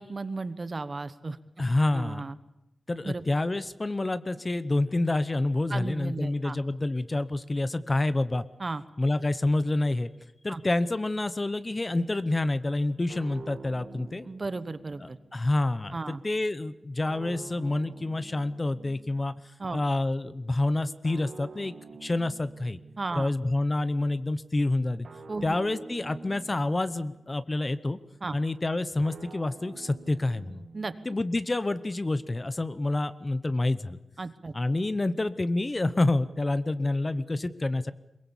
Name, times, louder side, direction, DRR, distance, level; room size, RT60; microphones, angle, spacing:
voice 1, 0.0-1.4 1.9-2.3 3.0-3.2 5.7-6.6 8.6-8.8 10.5-10.6 14.2-15.2 15.9-16.2 19.6-19.8 23.0-23.3 25.3-25.6 28.2-28.4 30.7-30.9 34.2-34.5, right 3 dB, 35° right, 13 dB, 1.1 m, -34 dB
voice 2, 1.6-2.3 2.9-8.4 9.0-10.1 10.4-14.3 15.0-19.3 19.7-21.7 22.0-22.8 23.1-25.1 25.4-28.0 28.3-30.6 31.0-34.0 34.5-37.9, left 2 dB, 25° left, 14 dB, 0.8 m, -28 dB
sound 1, 13.1-15.5 17.0-19.5 21.0-23.3 25.0-27.4 29.0-31.4, right 4 dB, 65° right, 1.6 m, -47 dB
22.5 x 22.0 x 7.2 m, 0.89 s
wide cardioid pair, 140°, 0 cm